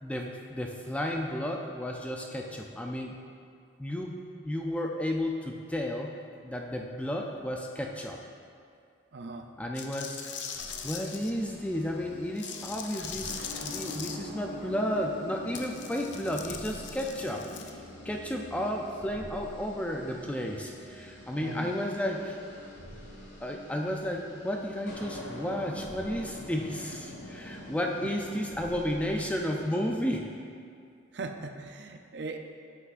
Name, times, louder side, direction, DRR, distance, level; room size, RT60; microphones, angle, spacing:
voice 1, 0.0-3.2 3.8-6.1 6.4-8.2 9.6-10.2 10.8-17.5 18.1-22.4 23.4-30.3, left 1 dB, 5° left, 1 dB, 0.3 m, -33 dB
voice 2, 9.1-9.5 21.3-21.7 28.0-28.1 31.1-32.4, right 3 dB, 60° right, 5 dB, 0.5 m, -39 dB
sound 1, 9.7-11.3 12.4-14.2 15.5-17.7, left 7 dB, 65° left, 0.5 m, -40 dB
sound 2, 10.5-29.9, left 1 dB, 85° left, 1.6 m, -45 dB
8.0 x 7.9 x 2.5 m, 2.3 s
head